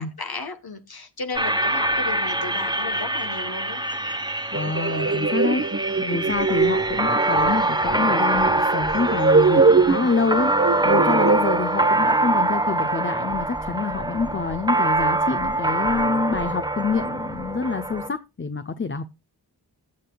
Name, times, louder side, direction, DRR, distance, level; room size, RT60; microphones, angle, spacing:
voice 1, 0.2-3.8, left 3 dB, 65° left, 1.3 m, -34 dB
sound 1, 1.3-18.1, right 2 dB, 10° right, 1.0 m, -24 dB
voice 2, 4.5-5.7 6.0-10.5 10.8-19.0, left 4 dB, 30° left, 0.6 m, -26 dB
sound 2, 4.5-11.9, right 4 dB, 30° right, 1.1 m, -22 dB
15.0 x 7.6 x 2.3 m
wide cardioid pair, 45°, 40 cm